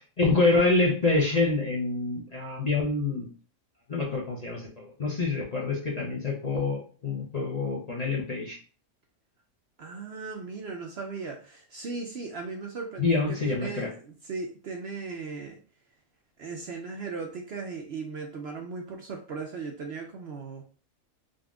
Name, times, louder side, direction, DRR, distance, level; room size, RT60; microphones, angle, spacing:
voice 1, 0.0-3.3 3.9-8.6 13.0-13.9, left 3 dB, 40° left, -3 dB, 0.6 m, -26 dB
voice 2, 9.8-15.6 16.4-20.6, right 4 dB, 60° right, 1 dB, 0.7 m, -37 dB
3.9 x 2.4 x 3.5 m, 0.39 s
omnidirectional pair, 1.5 m